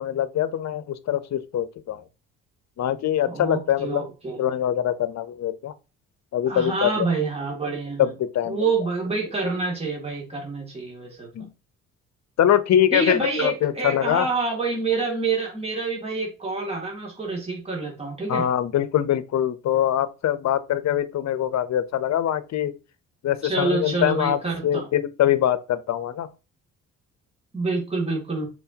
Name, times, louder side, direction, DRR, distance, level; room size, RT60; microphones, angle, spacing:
voice 1, 0.0-2.0 2.8-4.1 4.4-5.7 6.3-7.1 8.0-8.6 11.3-11.5 12.4-14.3 18.3-22.7 23.2-26.3, left 10 dB, 60° left, 0.8 m, -23 dB
voice 2, 3.3-4.4 6.5-8.1 8.5-11.5 12.9-18.5 23.4-24.9 27.5-28.5, right 3 dB, 20° right, 2.4 m, -27 dB
8.0 x 4.6 x 2.8 m
cardioid pair, 90°, 30 cm